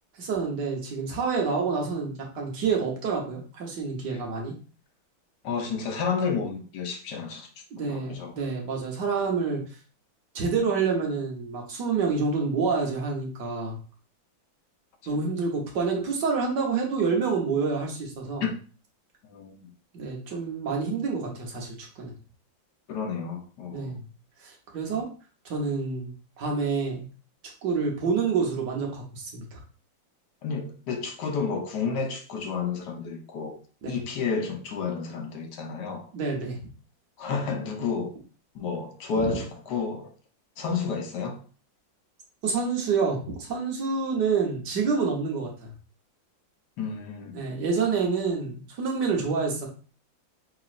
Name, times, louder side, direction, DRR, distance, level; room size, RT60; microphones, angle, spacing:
voice 1, 0.2-4.5 7.7-9.6 10.3-13.8 15.1-18.4 19.9-22.1 23.7-24.0 24.4-25.1 25.4-27.1 27.6-29.6 33.8-34.0 36.1-36.6 39.2-39.4 42.4-45.7 47.3-49.7, right 5 dB, 60° right, 1.6 m, -28 dB
voice 2, 5.4-7.5 7.8-8.4 18.4-18.5 19.3-19.7 22.9-24.0 30.4-33.6 33.9-36.1 37.2-38.1 38.5-40.1 40.6-41.4 46.8-47.4, left 5 dB, 65° left, 1.3 m, -31 dB
6.0 x 3.1 x 2.5 m
omnidirectional pair, 2.1 m